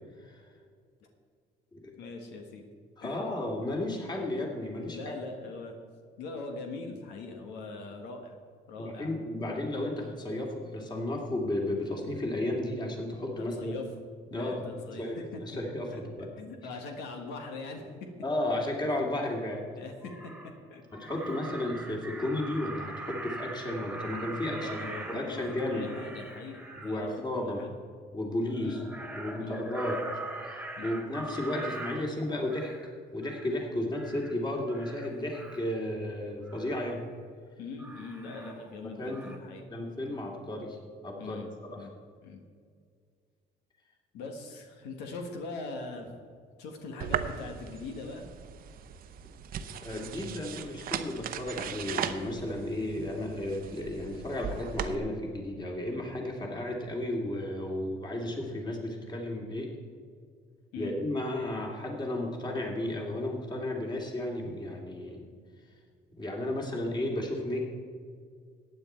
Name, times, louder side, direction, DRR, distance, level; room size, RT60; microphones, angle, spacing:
voice 1, 2.0-2.6 3.0-3.2 4.9-5.7 6.2-8.4 8.7-9.1 13.4-13.9 14.3-15.4 15.9-16.0 16.4-18.1 19.7-20.8 24.5-27.7 28.6-28.8 29.4-29.6 30.8-31.0 37.6-39.7 41.2-41.9 42.2-42.4 44.1-46.1 46.6-48.2 60.7-60.9, left 3 dB, 90° left, 4 dB, 1.6 m, -41 dB
voice 2, 3.0-5.1 8.8-13.7 14.3-14.7 15.0-16.3 18.2-19.6 20.9-25.9 26.8-27.6 28.1-28.8 29.1-30.0 30.5-32.7 33.1-37.0 38.8-39.3 39.7-40.8 41.0-41.4 41.7-41.9 49.8-59.7 60.8-65.2 66.2-67.7, left 1 dB, 25° left, 0 dB, 2.6 m, -33 dB
Crow, 19.5-19.6 20.0-20.6 20.9-27.0 28.5-32.9 33.2-33.6 33.9-34.3 34.7-35.7 36.5-36.8 37.8-38.9 39.1-39.4, right 2 dB, 5° right, 1.9 m, -42 dB
sound 1, 47.0-54.9, right 8 dB, 60° right, 0.8 m, -38 dB
15.0 x 9.4 x 4.5 m, 2.1 s
cardioid pair, 110°, 17 cm